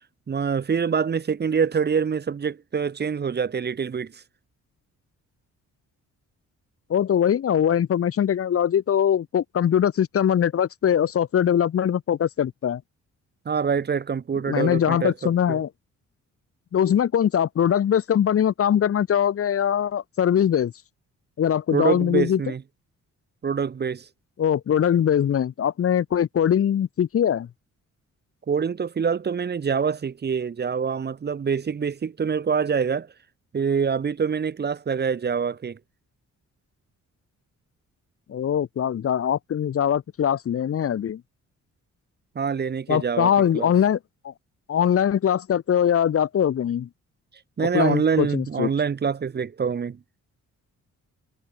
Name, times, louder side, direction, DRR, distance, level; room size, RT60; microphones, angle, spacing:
voice 1, 0.3-4.2 13.4-15.6 21.7-22.6 23.4-24.1 28.5-33.1 33.5-35.8 42.3-43.7 47.6-50.0, right 6 dB, 35° right, 1.2 m, -25 dB
voice 2, 6.9-12.8 14.5-15.7 16.7-20.7 21.4-22.4 24.4-27.5 38.3-41.2 42.9-44.0 44.2-44.3 44.7-46.9 47.6-48.7, left 9 dB, 50° left, 1.1 m, -22 dB
cardioid pair, 130°, 30 cm